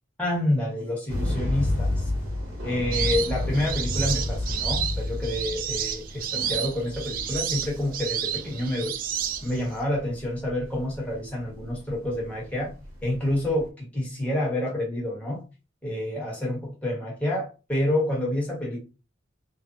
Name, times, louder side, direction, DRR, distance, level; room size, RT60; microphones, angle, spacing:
voice 1, 0.2-2.0 2.6-8.9 9.4-12.7 13.0-15.4 15.8-18.8, left 1 dB, 5° left, -4 dB, 1.2 m, -28 dB
sound 1, 1.1-13.7, left 1 dB, 80° right, 1.1 m, -32 dB
sound 2, 2.9-9.8, right 9 dB, 45° right, 0.3 m, -31 dB
3.2 x 2.1 x 2.6 m, 0.30 s
head